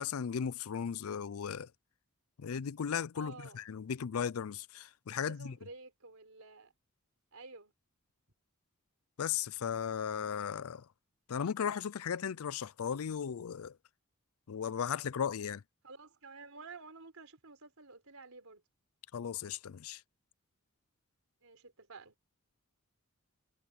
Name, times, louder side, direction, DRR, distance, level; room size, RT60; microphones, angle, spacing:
voice 1, 0.0-1.7 2.4-5.6 9.2-10.9 11.3-13.8 14.5-15.6 19.1-20.0, left 7 dB, 85° left, 0.4 m, -36 dB
voice 2, 3.1-3.6 5.1-6.7 7.3-7.7 15.8-18.6 21.4-22.1, right 3 dB, 80° right, 4.0 m, -51 dB
head